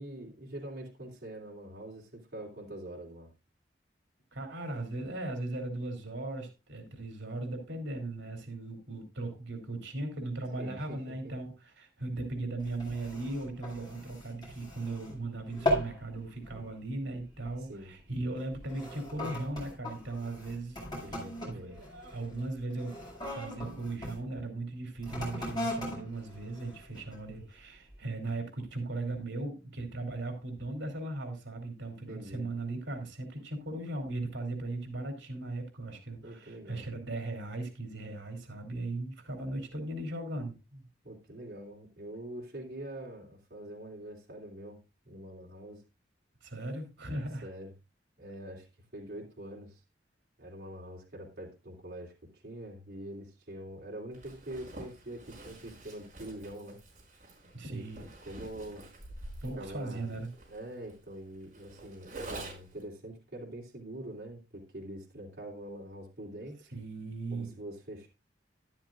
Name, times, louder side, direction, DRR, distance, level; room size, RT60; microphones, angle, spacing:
voice 1, 0.0-3.3 10.6-11.1 17.7-17.9 21.0-21.8 32.1-32.5 36.2-36.9 41.0-44.8 45.0-45.8 47.4-47.7 48.2-48.7 48.9-49.8 50.4-56.8 57.7-57.8 58.2-58.8 59.6-60.1 60.5-66.7 67.3-68.1, right 1 dB, 60° right, -3 dB, 2.9 m, -44 dB
voice 2, 4.3-20.8 21.1-23.0 23.3-40.8 46.4-47.5 57.5-58.0 59.4-60.3 66.7-67.5, right 2 dB, 80° right, 4 dB, 3.1 m, -38 dB
sound 1, 12.6-15.2 15.5-16.0 16.4-16.7 17.4-17.6 18.4-24.2 25.0-27.3 27.9-28.0, equal, 25° left, 7.0 m, -38 dB
Zipper (clothing), 54.1-62.8, right 2 dB, 45° right, 5.6 m, -47 dB
13.0 x 11.5 x 2.5 m, 0.26 s
head